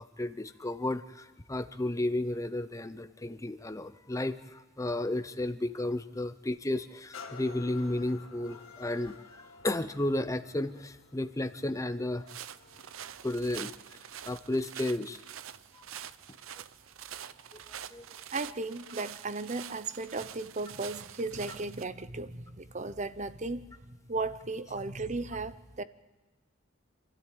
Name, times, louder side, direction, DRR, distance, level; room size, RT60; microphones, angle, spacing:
voice 1, 0.0-12.3 13.2-14.0 14.2-15.2 15.7-15.8 17.7-18.0, left 1 dB, 15° left, 11 dB, 0.7 m, -33 dB
sound 1, 7.1-14.7 15.3-15.4, left 5 dB, 90° left, 1.8 m, -52 dB
sound 2, 12.3-21.9, right 10 dB, 85° right, 0.7 m, -46 dB
voice 2, 18.3-23.7 24.1-25.8, right 3 dB, 35° right, 13 dB, 0.8 m, -35 dB
27.5 x 13.0 x 9.2 m, 1.1 s
head